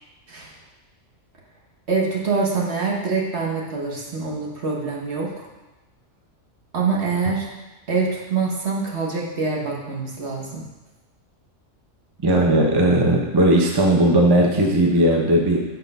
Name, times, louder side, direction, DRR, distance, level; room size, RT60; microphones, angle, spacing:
voice 1, 1.9-5.5 6.7-7.5 7.9-10.6, right 4 dB, 60° right, -2 dB, 1.6 m, -25 dB
voice 2, 12.2-15.6, right 1 dB, 20° right, -1 dB, 0.8 m, -17 dB
8.2 x 4.5 x 5.4 m, 1.1 s
omnidirectional pair, 1.3 m